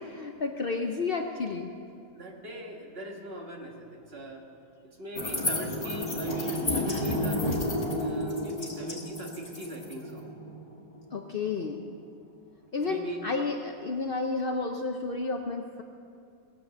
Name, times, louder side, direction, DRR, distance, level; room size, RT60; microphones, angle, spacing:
voice 1, 0.0-1.7 11.1-11.8 12.7-15.8, left 4 dB, 50° left, 3 dB, 0.8 m, -31 dB
voice 2, 2.1-4.4 4.8-7.7 7.9-10.3 12.8-13.2, right 1 dB, 45° right, 1 dB, 1.7 m, -40 dB
Mystical Creep, 5.1-11.7, left 1 dB, 25° left, 2.1 m, -31 dB
19.0 x 8.2 x 6.7 m, 2.5 s
omnidirectional pair, 1.5 m